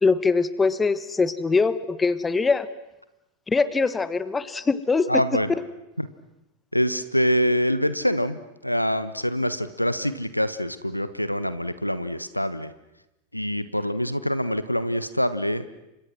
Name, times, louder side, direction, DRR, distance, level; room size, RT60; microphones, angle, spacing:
voice 1, 0.0-2.7 3.5-5.2, left 4 dB, 15° left, 16 dB, 1.3 m, -22 dB
voice 2, 5.1-5.5 6.0-6.1 6.7-12.7 13.3-15.7, equal, 90° left, 14 dB, 1.3 m, -25 dB
29.5 x 26.0 x 6.2 m, 0.92 s
figure-of-eight pair, 90°, 0 cm